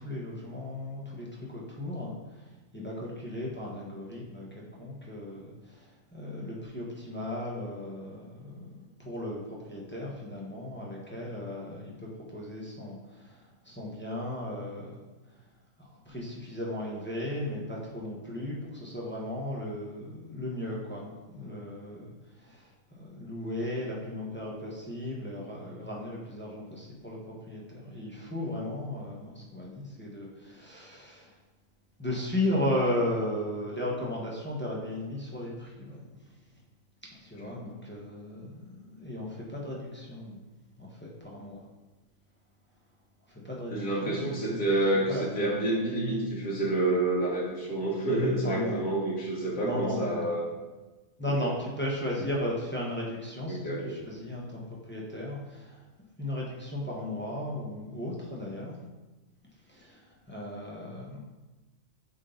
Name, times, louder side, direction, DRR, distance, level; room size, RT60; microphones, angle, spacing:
voice 1, 0.0-15.0 15.8-22.7 23.0-31.3 32.0-36.0 37.2-40.4 40.8-41.6 43.3-44.6 45.1-45.5 48.4-48.9 49.6-50.3 51.2-55.9 56.2-58.8 59.7-61.2, left 1 dB, 10° left, -4 dB, 1.1 m, -36 dB
voice 2, 43.7-50.5 51.4-51.5 53.5-53.9, right 2 dB, 80° left, -5 dB, 2.1 m, -28 dB
7.7 x 3.8 x 3.9 m, 1.2 s
omnidirectional pair, 1.4 m